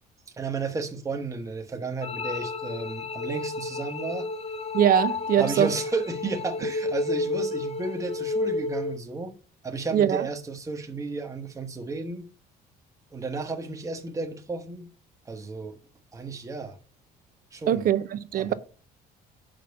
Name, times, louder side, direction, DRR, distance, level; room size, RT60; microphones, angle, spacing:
voice 1, 0.3-4.3 5.4-9.3 9.6-12.3 13.1-14.9 15.2-15.8 16.1-16.8 17.5-17.8 18.3-18.5, right 3 dB, 20° right, 1.1 m, -33 dB
sound 1, 2.0-9.0, left 3 dB, 35° left, 0.6 m, -31 dB
voice 2, 4.7-5.7 9.9-10.3 17.7-18.5, right 10 dB, 55° right, 0.6 m, -22 dB
5.6 x 5.2 x 6.7 m
cardioid pair, 110°, 17 cm